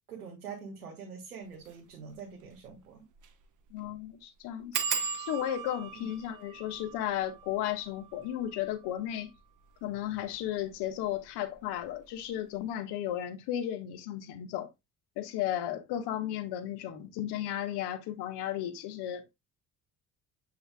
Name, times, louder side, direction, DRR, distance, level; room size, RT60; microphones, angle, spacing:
voice 1, 0.1-3.0 5.9-6.1, right 6 dB, 80° right, 1.7 m, -44 dB
sound 1, 1.6-1.8 2.2-2.3 2.5-2.6 3.2-3.4 3.7-3.8 4.7-10.0 10.7-11.2 11.5-11.9 12.1-12.2, right 7 dB, 45° right, 1.3 m, -38 dB
voice 2, 3.7-4.8 5.2-9.3 9.8-14.7 15.2-19.4, left 11 dB, 65° left, 1.5 m, -34 dB
8.0 x 5.6 x 2.2 m
figure-of-eight pair, 50°, 43 cm